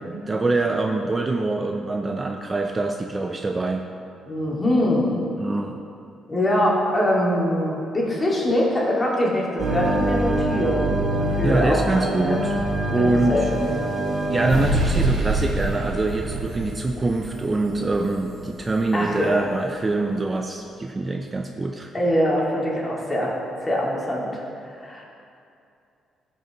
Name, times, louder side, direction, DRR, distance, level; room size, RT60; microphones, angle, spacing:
voice 1, 0.3-3.8 5.4-5.8 11.4-12.6 12.9-13.4 14.3-21.9, right 2 dB, 25° right, 2 dB, 0.5 m, -24 dB
voice 2, 4.2-5.2 6.3-11.0 11.4-12.4 13.0-13.7 18.9-19.4 21.9-23.3 23.6-24.3 24.8-25.0, left 1 dB, 25° left, -4 dB, 2.1 m, -23 dB
sound 1, 9.6-19.0, right 1 dB, 70° right, 1.8 m, -25 dB
14.0 x 5.4 x 3.0 m, 2.6 s
cardioid pair, 90°, 0 cm